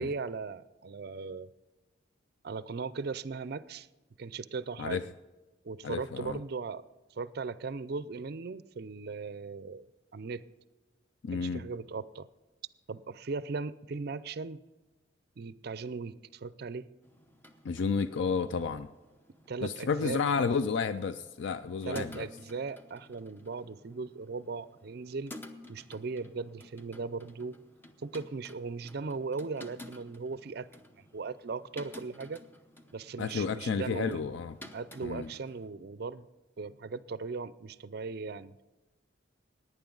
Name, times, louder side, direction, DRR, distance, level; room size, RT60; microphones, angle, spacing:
voice 1, 0.0-1.5 2.4-3.9 4.2-5.0 5.6-6.8 7.2-9.9 10.1-10.4 11.3-12.3 12.9-14.6 15.4-16.9 19.5-20.2 21.8-25.4 25.7-27.6 28.0-30.7 31.1-32.4 32.9-34.2 34.7-36.3 36.6-38.5, right 4 dB, 55° right, 0.4 m, -38 dB
voice 2, 5.8-6.4 11.2-11.6 17.6-18.9 19.6-22.3 33.2-34.6 35.0-35.3, left 5 dB, 70° left, 0.4 m, -31 dB
sound 1, 17.0-35.7, left 1 dB, 10° left, 0.8 m, -53 dB
17.5 x 9.6 x 3.9 m
head